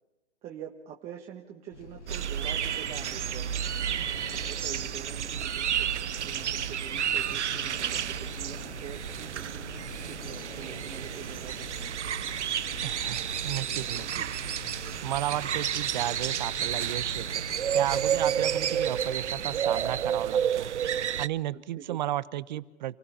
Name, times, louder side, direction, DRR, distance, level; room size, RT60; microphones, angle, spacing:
voice 1, 0.4-3.5 4.3-9.6 10.0-11.9 14.0-14.3 18.1-18.3 21.5-22.0, right 9 dB, 20° right, 1 dB, 1.4 m, -45 dB
sound 1, 1.7-20.3, left 3 dB, 90° left, 6.9 m, -46 dB
sound 2, 2.1-21.3, right 9 dB, 85° right, 0.8 m, -31 dB
voice 2, 12.8-14.2 15.0-17.4 17.7-20.7 21.2-23.0, right 13 dB, 40° right, 17 dB, 1.0 m, -33 dB
29.0 x 16.5 x 5.7 m, 1.1 s
hypercardioid pair, 150°, 34 cm